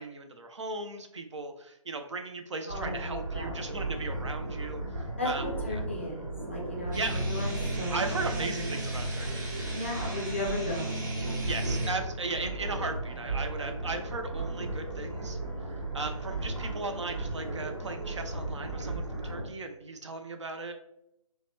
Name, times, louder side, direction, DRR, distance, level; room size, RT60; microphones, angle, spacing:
voice 1, 0.0-4.8 5.2-5.4 6.9-7.2 7.9-9.5 11.5-15.4 15.9-20.7, right 3 dB, 55° right, 6 dB, 0.4 m, -37 dB
voice 2, 2.7-3.6 5.2-8.7 9.7-11.0, left 2 dB, 20° left, -2 dB, 0.4 m, -36 dB
sound 1, 2.7-19.4, right 2 dB, 75° right, 1.2 m, -36 dB
sound 2, 6.9-11.9, right 1 dB, 30° right, 0.8 m, -34 dB
2.8 x 2.1 x 3.0 m, 0.81 s
figure-of-eight pair, 150°, 19 cm